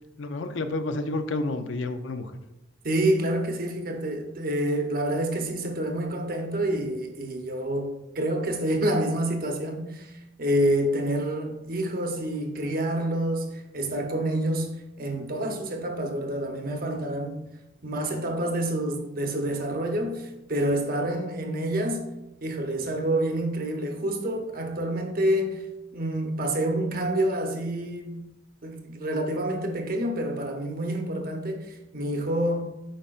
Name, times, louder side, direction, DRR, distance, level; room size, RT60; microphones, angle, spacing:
voice 1, 0.2-2.3, left 2 dB, 80° left, 0.6 m, -30 dB
voice 2, 2.8-17.4 17.8-22.1 22.4-25.7 25.9-28.3 28.6-32.6, right 1 dB, 50° right, 0.9 m, -28 dB
8.7 x 5.5 x 2.5 m
head